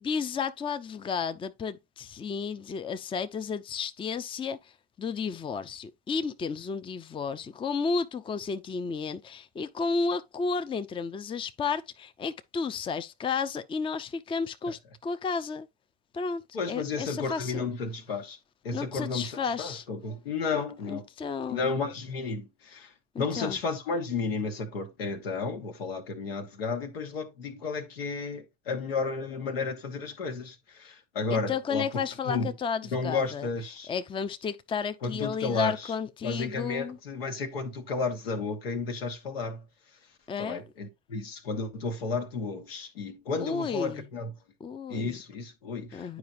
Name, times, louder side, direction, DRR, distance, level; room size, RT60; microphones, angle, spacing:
voice 1, 0.0-4.6 5.0-15.7 16.1-16.4 16.7-17.7 18.7-19.8 20.5-20.6 20.9-21.6 23.1-23.6 31.3-33.5 33.9-37.0 40.3-40.6 43.4-44.1 44.6-45.2 45.9-46.2, left 5 dB, 20° left, 0.5 m, -32 dB
voice 2, 16.5-18.4 18.6-21.0 21.5-22.9 23.2-31.9 32.2-32.5 32.9-33.9 35.0-35.9 36.2-39.6 40.4-44.3 44.9-46.2, left 4 dB, 90° left, 1.4 m, -32 dB
9.4 x 4.9 x 2.6 m
hypercardioid pair, 85°, 29 cm